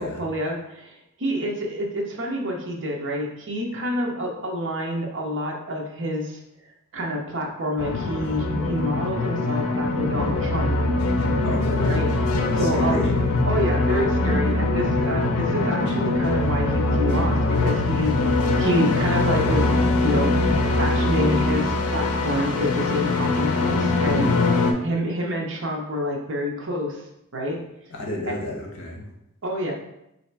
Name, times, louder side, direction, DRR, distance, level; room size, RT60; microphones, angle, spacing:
voice 1, 0.0-6.4 6.9-10.7 11.8-12.1 12.5-13.0 13.5-19.7 20.0-27.0 27.3-27.6 28.3-28.4 29.4-29.7, equal, 55° right, 0 dB, 0.8 m, -27 dB
sound 1, 7.8-24.7, left 2 dB, 80° left, 0.5 m, -22 dB
voice 2, 11.4-12.0 12.4-13.1 27.9-29.0, left 2 dB, 60° left, 0 dB, 0.9 m, -31 dB
3.2 x 2.8 x 4.5 m, 0.83 s
head